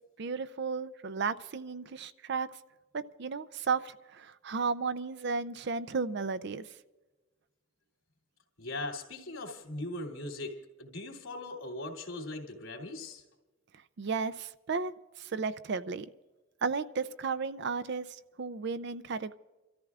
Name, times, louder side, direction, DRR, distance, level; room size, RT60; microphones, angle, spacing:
voice 1, 0.2-2.5 2.9-6.7 14.0-14.9 15.2-16.1 16.6-19.3, right 5 dB, 55° right, 13 dB, 0.5 m, -34 dB
voice 2, 8.6-13.2, left 2 dB, 85° left, 1 dB, 2.7 m, -40 dB
29.5 x 14.0 x 2.4 m, 1.2 s
head